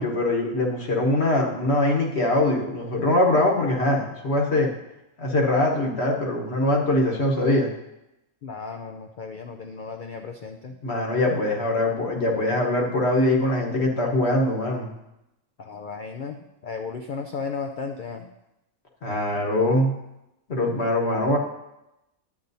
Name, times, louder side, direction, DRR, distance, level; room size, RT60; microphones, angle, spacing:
voice 1, 0.0-4.7 5.2-7.7 10.8-14.9 19.0-19.9 20.5-21.4, left 1 dB, 50° left, 0 dB, 1.3 m, -22 dB
voice 2, 8.4-10.8 15.6-18.3, left 5 dB, 90° left, 4 dB, 0.4 m, -35 dB
10.5 x 8.5 x 2.7 m, 0.90 s
omnidirectional pair, 1.5 m